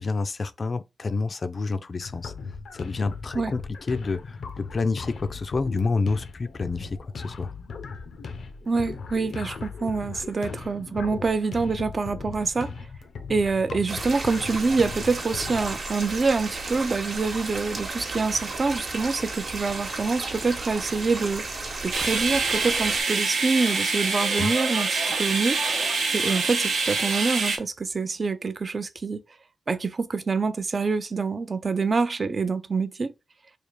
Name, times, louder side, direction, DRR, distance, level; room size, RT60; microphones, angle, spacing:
voice 1, 0.0-2.3 2.7-3.6 3.9-7.5 24.4-24.5, left 3 dB, 40° left, 0.4 m, -28 dB
sound 1, 2.0-15.8, left 4 dB, 90° left, 0.5 m, -38 dB
voice 2, 8.7-12.7 13.3-25.6 26.1-29.2 29.7-33.1, right 4 dB, 40° right, 0.4 m, -26 dB
sound 2, 13.9-23.0, right 3 dB, 60° right, 1.0 m, -34 dB
sound 3, 21.9-27.6, right 4 dB, 90° right, 0.9 m, -25 dB
3.4 x 2.4 x 4.4 m
wide cardioid pair, 130°, 0 cm